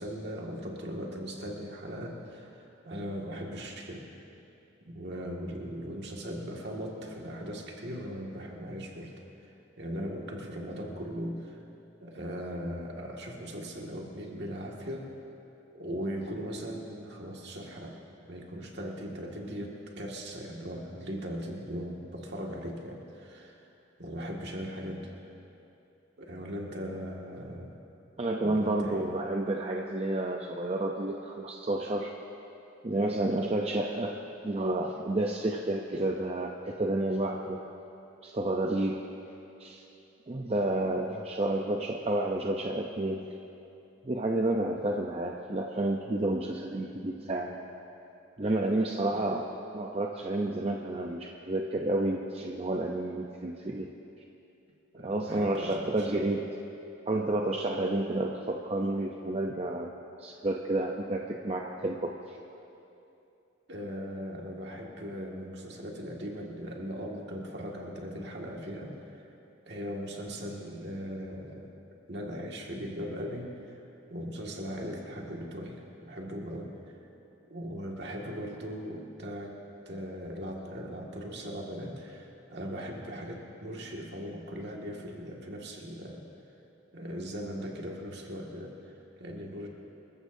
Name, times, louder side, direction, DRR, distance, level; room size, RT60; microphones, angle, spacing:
voice 1, 0.0-4.1 4.8-9.1 9.4-9.5 9.8-11.6 12.0-15.1 15.7-18.0 18.2-23.7 24.0-25.1 26.2-27.8 28.4-29.0 49.1-49.3 54.9-56.2 63.7-69.2 69.7-71.7 72.1-73.8 74.1-76.7 77.5-79.5 79.9-86.2 86.9-89.7, equal, 55° right, -1 dB, 2.0 m, -39 dB
voice 2, 28.2-32.1 32.8-34.2 34.4-37.6 38.2-39.1 39.6-39.8 40.3-43.2 44.0-47.6 48.4-53.9 55.0-56.5 57.1-59.9 60.2-62.4, right 2 dB, 30° right, 1 dB, 0.6 m, -30 dB
26.0 x 14.5 x 2.7 m, 2.8 s
head